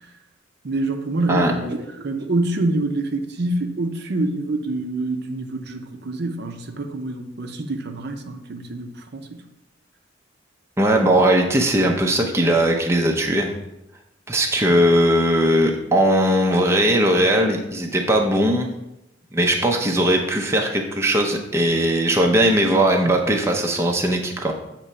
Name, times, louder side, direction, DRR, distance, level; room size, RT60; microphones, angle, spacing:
voice 1, 0.6-9.4, right 2 dB, 55° right, 6 dB, 0.6 m, -26 dB
voice 2, 10.8-13.5 14.3-18.7 19.3-24.5, right 1 dB, 15° right, 1 dB, 0.6 m, -19 dB
7.4 x 3.0 x 5.5 m, 0.89 s
head